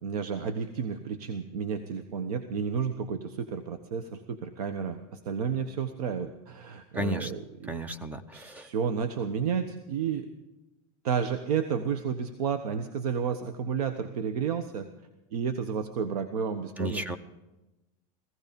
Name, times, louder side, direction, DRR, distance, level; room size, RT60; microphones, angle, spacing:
voice 1, 0.0-7.7 8.3-10.3 11.0-14.9 15.3-17.2, right 6 dB, 90° right, 9 dB, 1.1 m, -31 dB
voice 2, 6.9-7.3 7.6-8.7 16.8-17.2, right 1 dB, 10° right, 12 dB, 0.7 m, -33 dB
16.0 x 15.5 x 5.3 m, 1.0 s
supercardioid pair, 150°, 19 cm